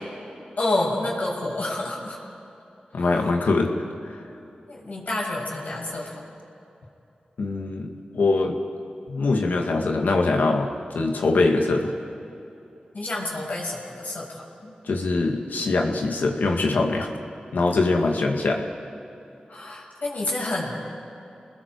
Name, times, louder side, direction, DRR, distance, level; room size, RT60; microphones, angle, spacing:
voice 1, 0.6-2.2 4.7-6.1 12.9-14.7 19.5-20.8, left 2 dB, 65° left, -4 dB, 7.2 m, -29 dB
voice 2, 2.9-3.7 4.0-4.2 7.4-8.6 9.1-10.7 10.9-11.9 14.8-17.1 17.5-18.6, left 3 dB, 85° left, 2 dB, 2.2 m, -23 dB
29.5 x 20.5 x 4.8 m, 2.9 s
cardioid pair, 45°, 3 cm